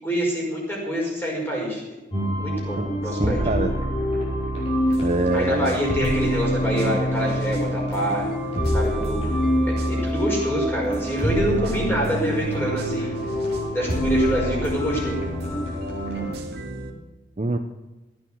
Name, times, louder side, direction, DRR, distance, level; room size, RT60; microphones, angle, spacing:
voice 1, 0.0-1.8 2.4-3.4 5.3-8.2 8.7-9.3 9.9-13.1 13.7-15.2, equal, 10° left, -3 dB, 5.3 m, -26 dB
sound 1, 2.1-16.3, equal, 35° left, 5.2 m, -25 dB
voice 2, 2.8-3.7 5.0-5.8 17.4-17.6, right 2 dB, 35° right, 7 dB, 0.7 m, -25 dB
sound 2, 4.9-10.2 10.9-16.9, right 1 dB, 60° right, 2.1 m, -38 dB
15.0 x 9.3 x 7.7 m, 1.1 s
head